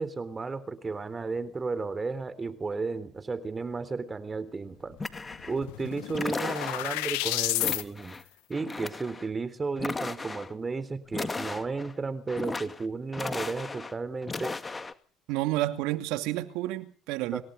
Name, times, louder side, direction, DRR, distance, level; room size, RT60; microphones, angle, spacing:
voice 1, 0.0-5.0 5.5-8.2 8.5-14.5 17.3-17.4, right 4 dB, 25° right, 3.7 m, -33 dB
sound 1, 5.0-5.1 5.3-7.8, left 18 dB, 85° left, 1.8 m, -31 dB
sound 2, 5.0-5.6 6.1-7.0 7.6-8.2 8.5-9.3 9.8-10.5 11.1-11.9 12.3-12.8 13.1-13.9 14.2-14.9, left 3 dB, 20° left, 2.1 m, -36 dB
voice 2, 15.3-17.4, right 16 dB, 80° right, 2.5 m, -30 dB
27.5 x 17.5 x 5.4 m
supercardioid pair, 85°, 0 cm